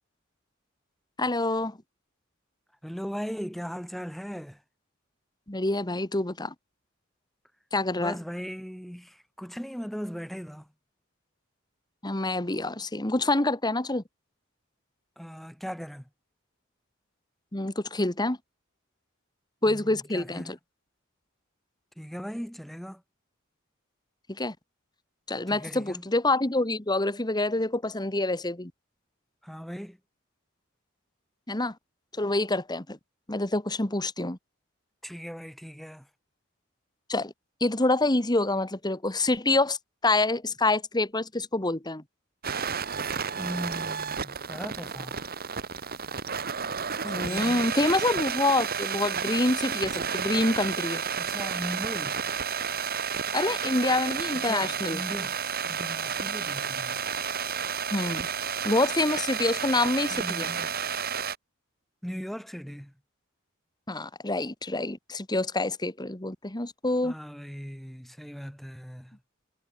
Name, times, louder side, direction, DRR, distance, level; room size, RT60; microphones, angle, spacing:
voice 1, 1.2-1.8 5.5-6.5 7.7-8.2 12.0-14.0 17.5-18.4 19.6-20.6 24.3-24.5 25.3-28.7 31.5-31.7 32.2-33.0 33.3-34.4 37.1-37.3 37.6-39.8 40.0-42.0 47.0-51.0 53.3-55.0 57.9-58.3 58.6-60.5 63.9-67.1, left 2 dB, 20° left, 1.8 m, -27 dB
voice 2, 2.8-4.6 8.0-10.7 15.2-16.1 19.7-20.6 22.0-23.0 25.5-26.1 29.4-30.0 35.0-36.1 43.4-45.2 47.1-47.6 51.1-52.3 54.3-55.3 55.6-57.0 60.1-60.8 62.0-62.9 67.0-69.2, equal, ahead, 2.9 m, -38 dB
sound 1, 42.4-61.4, right 7 dB, 50° right, 2.3 m, -31 dB
head